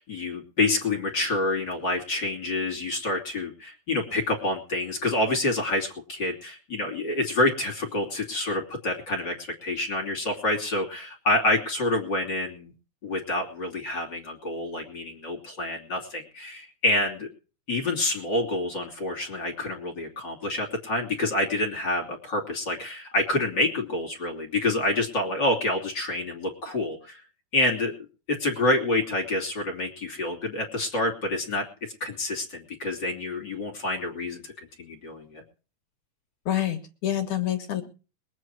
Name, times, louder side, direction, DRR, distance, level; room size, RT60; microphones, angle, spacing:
voice 1, 0.0-12.7 13.0-17.3 17.7-27.2 27.5-27.9 28.3-31.7 32.0-35.4, left 2 dB, 30° left, 1 dB, 3.1 m, -27 dB
voice 2, 36.5-37.8, left 12 dB, 65° left, 5 dB, 2.5 m, -27 dB
22.5 x 8.7 x 4.7 m, 0.36 s
omnidirectional pair, 4.2 m